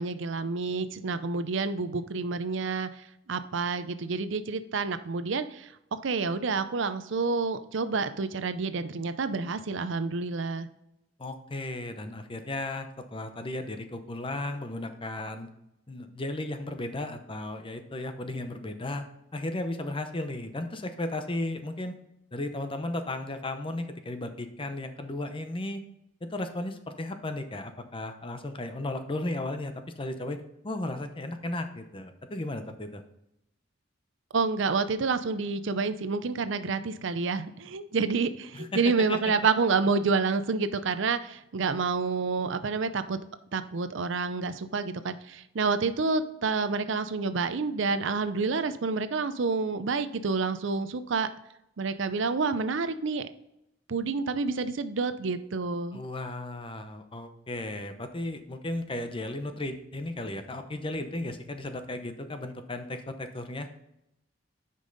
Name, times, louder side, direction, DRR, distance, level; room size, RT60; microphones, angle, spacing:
voice 1, 0.0-10.7 34.3-43.2 43.5-51.3 51.8-53.3 53.9-56.0, right 4 dB, 70° right, 12 dB, 0.6 m, -29 dB
voice 2, 11.2-15.5 15.9-19.1 19.3-21.9 22.3-25.8 26.2-33.0 38.5-38.8 39.1-39.2 55.9-63.7, left 2 dB, 25° left, 8 dB, 0.8 m, -35 dB
9.9 x 5.4 x 4.0 m, 0.83 s
head